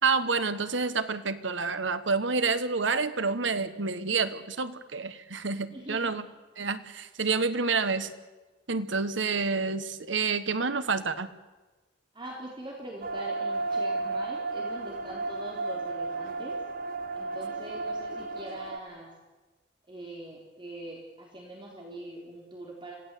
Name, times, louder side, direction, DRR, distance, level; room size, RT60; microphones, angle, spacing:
voice 1, 0.0-6.2 6.6-8.1 8.7-11.3, right 4 dB, 80° right, 12 dB, 1.4 m, -28 dB
voice 2, 5.7-6.2 12.1-16.6 17.1-19.1 19.9-23.0, right 1 dB, 25° right, -1 dB, 3.8 m, -43 dB
sound 1, 13.0-18.8, right 3 dB, 50° right, 0.9 m, -33 dB
26.5 x 17.0 x 8.4 m, 1.2 s
head